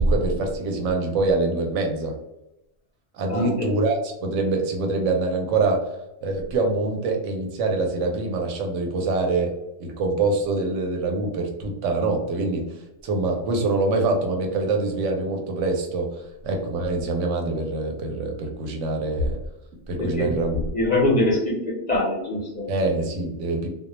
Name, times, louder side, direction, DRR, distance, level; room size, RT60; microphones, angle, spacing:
voice 1, 0.0-2.1 3.1-5.8 6.2-9.5 9.8-12.8 13.0-19.4 19.9-20.6 22.7-23.7, right 3 dB, 80° right, 2 dB, 0.9 m, -25 dB
voice 2, 3.3-3.7 20.0-20.3 20.7-22.7, left 1 dB, 45° left, -4 dB, 0.6 m, -23 dB
2.2 x 2.1 x 2.9 m, 0.90 s
omnidirectional pair, 1.3 m